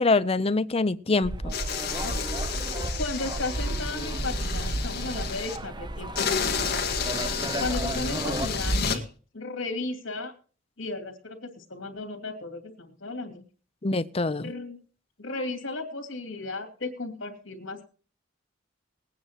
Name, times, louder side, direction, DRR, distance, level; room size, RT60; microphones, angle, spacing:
voice 1, 0.0-1.5 13.8-14.5, left 3 dB, 30° left, 0.6 m, -24 dB
sound 1, 1.2-8.8, right 1 dB, 25° right, 0.7 m, -32 dB
sound 2, 1.5-5.6 6.2-9.0, left 6 dB, 55° left, 1.9 m, -31 dB
voice 2, 3.0-6.9 7.6-9.0 9.3-10.3 10.8-13.4 14.4-14.8 15.2-17.8, left 2 dB, 80° left, 2.7 m, -35 dB
21.0 x 9.4 x 3.0 m
head